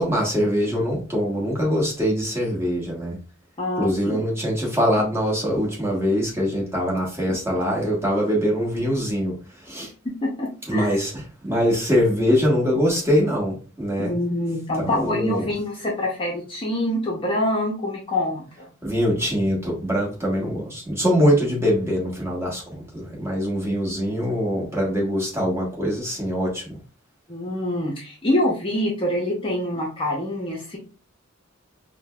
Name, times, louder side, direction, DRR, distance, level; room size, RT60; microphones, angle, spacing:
voice 1, 0.0-3.2 3.8-9.3 9.7-9.9 10.7-14.1 14.7-15.5 18.8-26.8, equal, 10° right, -4 dB, 1.2 m, -23 dB
voice 2, 3.6-4.2 10.2-11.0 14.0-18.7 27.3-30.8, left 1 dB, 25° left, -2 dB, 0.6 m, -25 dB
4.9 x 2.1 x 2.3 m, 0.37 s
head